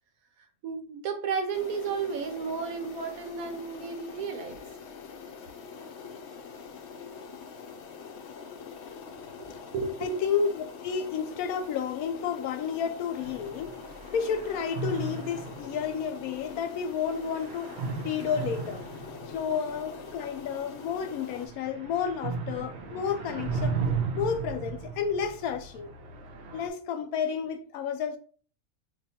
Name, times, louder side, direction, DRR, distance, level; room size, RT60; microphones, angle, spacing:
voice 1, 0.6-4.6 9.4-10.2, right 5 dB, 75° right, 1.1 m, -33 dB
sound 1, 1.5-21.5, left 5 dB, 65° left, 0.7 m, -44 dB
voice 2, 9.2-9.6 10.0-13.7 14.0-25.9 26.5-28.2, left 7 dB, 85° left, 1.0 m, -31 dB
sound 2, 13.2-26.7, right 5 dB, 60° right, 0.7 m, -36 dB
2.8 x 2.3 x 4.0 m
omnidirectional pair, 1.5 m